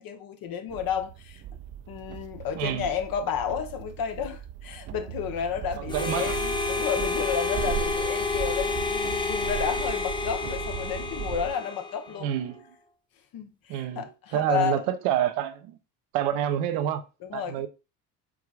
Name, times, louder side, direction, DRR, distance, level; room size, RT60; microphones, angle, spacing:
voice 1, 0.0-1.4 1.9-12.3 13.3-14.8 17.2-17.6, left 8 dB, 45° left, 1.0 m, -32 dB
sound 1, 0.7-11.5, right 11 dB, 35° right, 0.4 m, -37 dB
voice 2, 2.6-2.9 5.9-6.4 9.2-9.3 12.2-12.6 13.7-14.0 14.3-15.8 16.1-17.0 17.3-17.7, right 10 dB, 60° right, 0.7 m, -27 dB
Harmonica, 5.9-12.3, left 4 dB, 10° left, 0.7 m, -30 dB
4.8 x 4.6 x 2.4 m
figure-of-eight pair, 55°, 47 cm